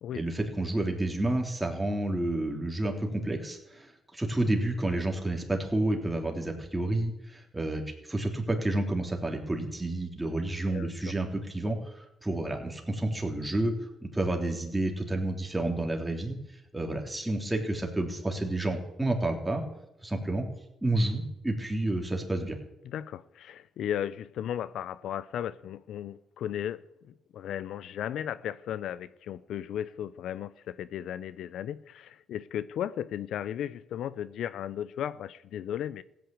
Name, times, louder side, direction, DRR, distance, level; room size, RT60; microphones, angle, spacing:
voice 1, 0.1-13.7 14.0-16.3 16.7-19.6 20.0-20.4 20.8-22.6, right 2 dB, 10° right, 3.5 m, -30 dB
voice 2, 22.8-36.0, left 10 dB, 75° left, 0.5 m, -35 dB
16.0 x 9.3 x 8.5 m
cardioid pair, 90°, 0 cm